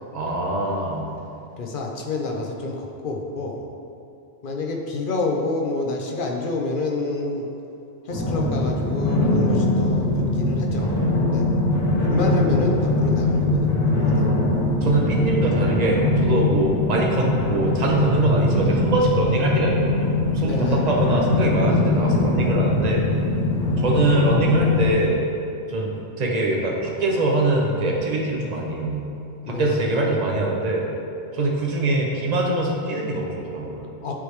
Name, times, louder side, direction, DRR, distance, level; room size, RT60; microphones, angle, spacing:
voice 1, 0.1-1.1 14.8-23.0 23.8-25.3 25.7-29.0 29.4-30.9 31.3-33.8, right 2 dB, 40° right, -2 dB, 0.8 m, -23 dB
voice 2, 1.6-3.6 4.4-7.5 8.1-10.1 10.4-11.0 11.3-11.5 12.0-14.3 20.4-20.8 29.5-30.2 34.0-34.1, left 3 dB, 55° left, 0 dB, 0.7 m, -28 dB
sound 1, 8.1-24.9, left 2 dB, 20° left, 0.7 m, -21 dB
9.5 x 3.3 x 3.2 m, 2.8 s
omnidirectional pair, 1.2 m